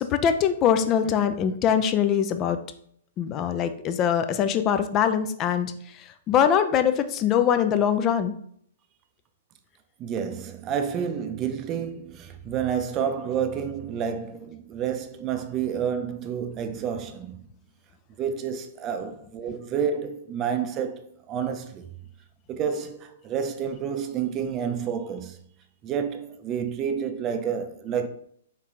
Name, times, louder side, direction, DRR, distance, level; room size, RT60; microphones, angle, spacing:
voice 1, 0.0-2.6 3.2-8.3, left 8 dB, 30° left, 0.4 m, -23 dB
voice 2, 10.0-17.5 18.2-21.9 22.5-25.4 25.8-28.1, right 7 dB, 30° right, 0.5 m, -29 dB
4.4 x 3.2 x 3.7 m
figure-of-eight pair, 115°, 0 cm